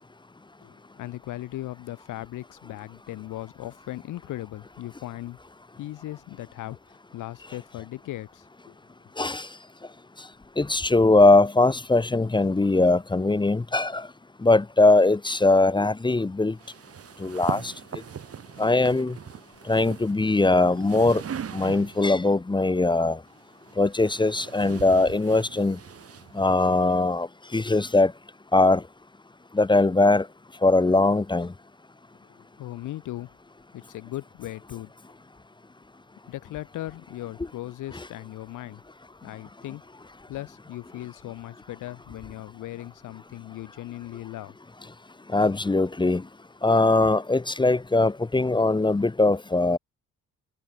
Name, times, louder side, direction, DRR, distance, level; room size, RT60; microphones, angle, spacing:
voice 1, 0.6-5.4 5.8-8.8 32.2-33.4 33.7-34.9 36.3-38.8 39.2-39.8 40.3-44.5, left 15 dB, 85° left, 4.2 m, -38 dB
voice 2, 9.2-9.5 10.6-14.1 14.4-16.5 17.2-17.7 18.6-19.2 19.7-21.2 21.5-23.2 23.8-25.8 26.3-27.3 27.5-28.1 28.5-28.8 29.5-30.3 30.6-31.5 37.9-38.0 45.3-46.2 46.6-49.8, left 2 dB, 15° left, 1.0 m, -21 dB
sound 1, 16.6-22.2 23.3-26.8, right 8 dB, 50° right, 3.6 m, -40 dB
cardioid pair, 90°, 30 cm